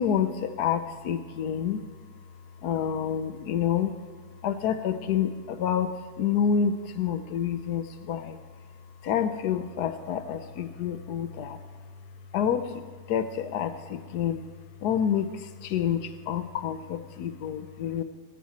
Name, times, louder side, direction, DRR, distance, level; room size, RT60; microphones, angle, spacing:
voice 1, 0.0-1.8 2.6-3.9 4.4-8.4 9.0-11.6 12.3-14.5 14.8-18.0, left 8 dB, 80° left, 10 dB, 1.3 m, -28 dB
19.0 x 13.5 x 4.2 m, 1.4 s
omnidirectional pair, 1.7 m